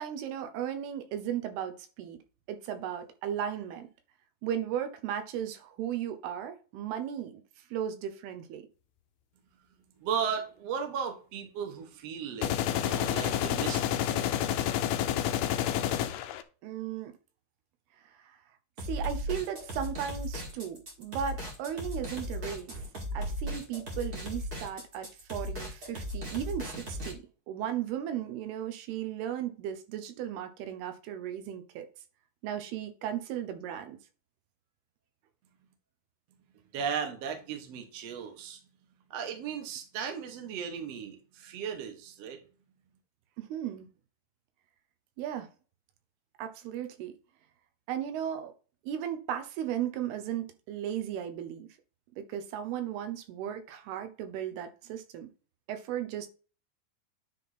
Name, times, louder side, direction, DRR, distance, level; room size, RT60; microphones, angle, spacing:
voice 1, 0.0-2.2 2.5-3.9 4.4-8.6 16.6-17.1 18.1-18.4 18.8-22.8 23.1-27.2 27.5-31.9 32.4-34.0 43.4-43.9 45.2-45.5 46.4-47.2 47.9-48.5 48.8-51.7 52.2-55.3 55.7-56.3, right 10 dB, 85° right, 2.9 m, -36 dB
voice 2, 10.0-14.4 36.7-38.6 39.1-42.4, right 7 dB, 55° right, 1.9 m, -36 dB
sound 1, 12.4-16.4, left 11 dB, 80° left, 2.5 m, -29 dB
sound 2, 18.8-27.1, equal, 35° right, 1.6 m, -37 dB
9.9 x 3.6 x 4.2 m
omnidirectional pair, 4.4 m